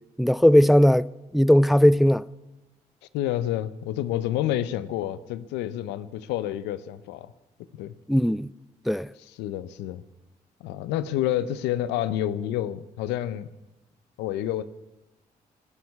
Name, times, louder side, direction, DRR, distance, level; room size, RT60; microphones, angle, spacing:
voice 1, 0.2-1.1 1.3-2.2 8.1-8.5 8.9-9.1, equal, ahead, 0.4 m, -18 dB
voice 2, 3.1-7.3 7.7-7.9 9.2-10.0 10.6-13.5 14.2-14.6, left 12 dB, 90° left, 0.6 m, -29 dB
19.5 x 7.3 x 9.5 m
supercardioid pair, 45°, 17 cm